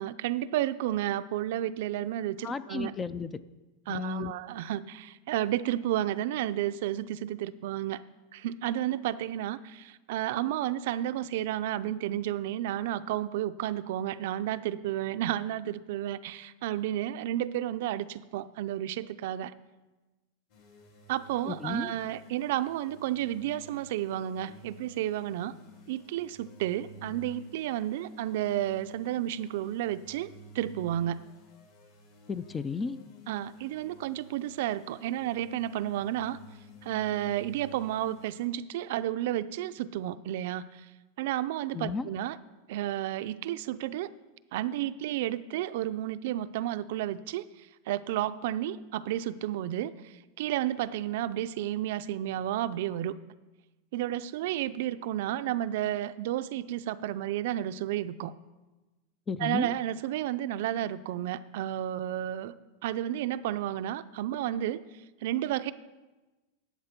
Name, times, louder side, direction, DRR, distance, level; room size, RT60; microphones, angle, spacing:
voice 1, 0.0-2.9 3.9-8.0 8.3-19.5 21.1-25.6 25.9-30.3 30.5-31.3 33.3-36.4 36.8-40.9 41.2-42.4 42.7-44.1 44.5-53.1 53.9-58.3 59.4-62.5 62.8-64.8 65.2-65.7, right 12 dB, 60° right, 13 dB, 0.5 m, -32 dB
voice 2, 2.4-3.4 3.9-4.3 21.5-21.9 32.3-33.0 41.7-42.1 59.3-59.7, left 5 dB, 15° left, 16 dB, 0.3 m, -33 dB
sound 1, 20.5-38.5, equal, 55° left, 3.1 m, -52 dB
11.0 x 8.3 x 5.9 m, 1.1 s
supercardioid pair, 160°, 0 cm